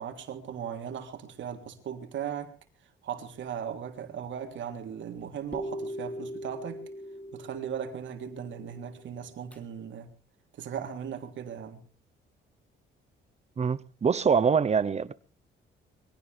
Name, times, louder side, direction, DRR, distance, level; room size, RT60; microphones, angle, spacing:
voice 1, 0.0-2.5 3.0-6.8 7.3-10.1 10.6-11.8, right 8 dB, 70° right, 3.3 m, -37 dB
sound 1, 5.5-9.6, equal, 5° left, 3.1 m, -40 dB
voice 2, 13.6-15.1, right 6 dB, 35° right, 0.9 m, -24 dB
23.0 x 16.5 x 3.4 m
cardioid pair, 90°, 20 cm